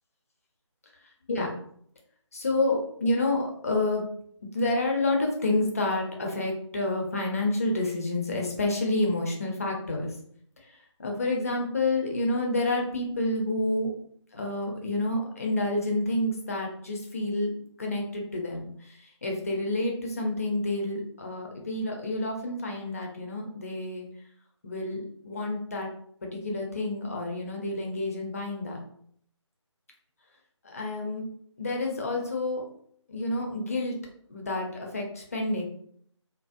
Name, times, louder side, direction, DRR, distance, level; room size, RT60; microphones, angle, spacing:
voice 1, 2.3-4.1 4.5-10.2 11.0-13.9 14.3-17.5 17.8-24.1 24.6-25.9 26.2-28.8 30.6-31.3 31.6-32.7 33.1-34.0 34.3-35.6, left 2 dB, 30° left, 0 dB, 0.4 m, -29 dB
2.5 x 2.0 x 2.4 m, 0.64 s
figure-of-eight pair, 155°, 16 cm